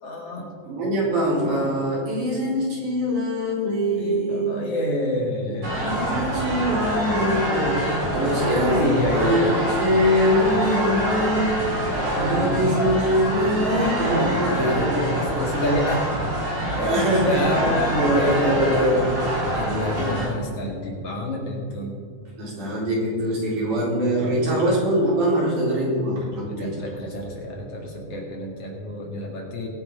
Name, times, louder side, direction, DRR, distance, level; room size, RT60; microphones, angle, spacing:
voice 1, 0.0-0.5 3.9-5.8 7.2-7.4 8.1-9.8 12.1-12.7 13.5-16.1 16.6-19.1 19.5-22.0 23.7-23.9 24.2-25.0 26.5-29.7, left 1 dB, 50° left, 0 dB, 3.0 m, -28 dB
voice 2, 0.6-4.5 5.4-11.6 12.2-15.1 16.7-17.7 17.9-19.0 22.4-27.0, equal, 80° right, -5 dB, 5.4 m, -23 dB
sound 1, 5.6-20.3, right 1 dB, 60° right, 5.3 m, -26 dB
21.5 x 9.6 x 3.7 m, 2.2 s
omnidirectional pair, 3.5 m